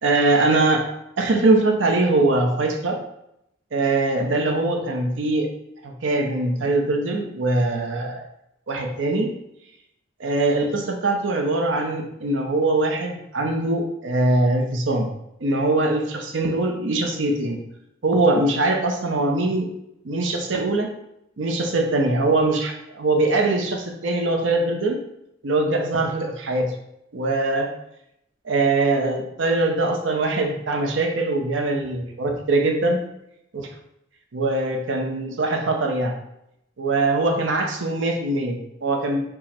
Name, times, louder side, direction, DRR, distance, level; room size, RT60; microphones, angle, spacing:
voice 1, 0.0-0.9 1.2-3.0 3.7-5.5 5.8-8.3 8.7-9.3 10.2-15.1 15.4-17.6 18.0-19.7 20.0-20.9 21.4-25.0 25.4-26.7 27.1-27.7 28.4-33.0 33.5-33.7 34.3-36.1 36.8-39.2, right 2 dB, 80° right, 3 dB, 0.6 m, -22 dB
4.5 x 2.1 x 4.2 m, 0.79 s
head